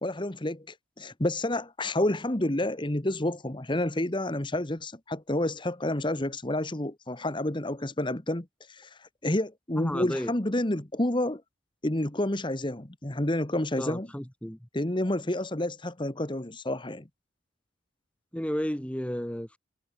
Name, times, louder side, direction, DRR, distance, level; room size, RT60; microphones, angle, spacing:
voice 1, 0.0-11.4 11.8-14.1 14.7-17.1, left 1 dB, 25° left, 1.3 m, -29 dB
voice 2, 9.8-10.3 13.8-14.7 18.3-19.6, equal, 5° left, 1.1 m, -33 dB
head